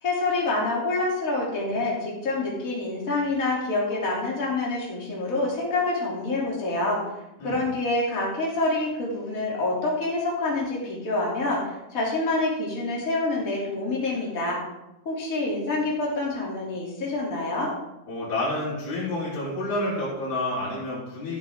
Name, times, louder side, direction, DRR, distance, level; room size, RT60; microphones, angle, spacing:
voice 1, 0.0-7.0 7.4-11.6 11.9-14.6 15.0-17.7, left 2 dB, 25° left, -4 dB, 2.8 m, -27 dB
voice 2, 18.1-21.4, left 1 dB, 70° left, -11 dB, 5.3 m, -29 dB
15.0 x 7.5 x 3.6 m, 0.93 s
omnidirectional pair, 4.3 m